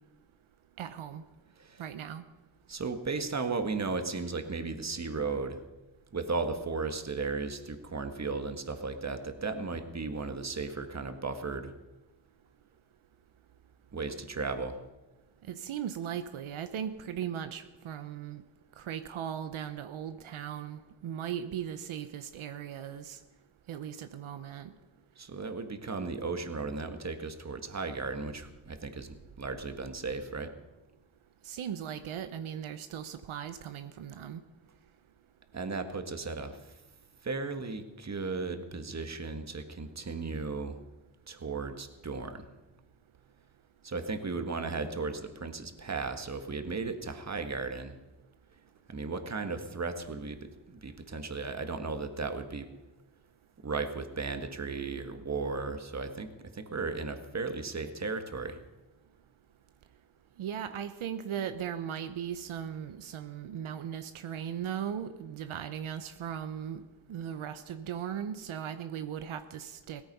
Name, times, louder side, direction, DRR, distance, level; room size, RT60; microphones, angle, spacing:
voice 1, 0.8-1.2 1.8-2.2 15.5-18.4 18.8-23.2 23.7-24.7 31.4-34.4 60.4-66.8 67.1-70.0, right 9 dB, 80° right, 10 dB, 0.9 m, -38 dB
voice 2, 2.7-5.6 6.1-11.7 13.9-14.8 25.2-30.5 35.5-36.6 37.2-40.8 41.3-42.4 43.8-47.9 48.9-52.7 53.6-58.6, right 4 dB, 35° right, 8 dB, 1.7 m, -35 dB
17.0 x 14.0 x 5.5 m, 1.1 s
cardioid pair, 75°, 48 cm